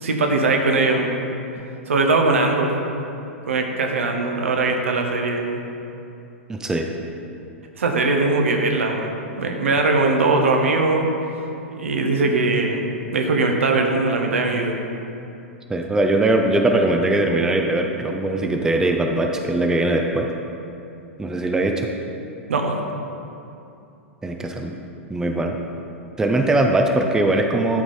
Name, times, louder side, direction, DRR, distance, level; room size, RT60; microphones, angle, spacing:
voice 1, 0.0-1.2 1.9-2.7 3.5-5.6 7.8-9.1 9.3-11.1 11.7-14.8 22.5-22.8, right 3 dB, 70° right, 3 dB, 1.0 m, -20 dB
voice 2, 6.5-6.9 15.7-20.3 21.2-21.9 24.2-24.8 25.1-25.6 26.2-27.8, right 2 dB, 10° right, 3 dB, 0.5 m, -20 dB
11.0 x 4.6 x 4.1 m, 2.7 s
figure-of-eight pair, 100°, 7 cm